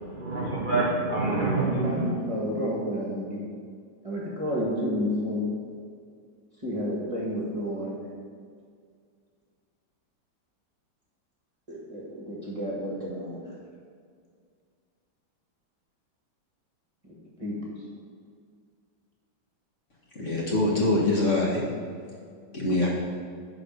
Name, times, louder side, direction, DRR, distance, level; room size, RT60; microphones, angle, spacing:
voice 1, 0.0-2.1, right 3 dB, 65° right, -4 dB, 0.5 m, -26 dB
voice 2, 1.6-3.4 4.0-5.5 6.6-8.0 11.7-13.4 17.0-17.7, equal, 20° right, -5 dB, 1.4 m, -31 dB
voice 3, 20.2-21.6 22.5-22.9, left 2 dB, 40° left, -4 dB, 1.6 m, -24 dB
10.5 x 4.2 x 5.3 m, 2.1 s
omnidirectional pair, 2.1 m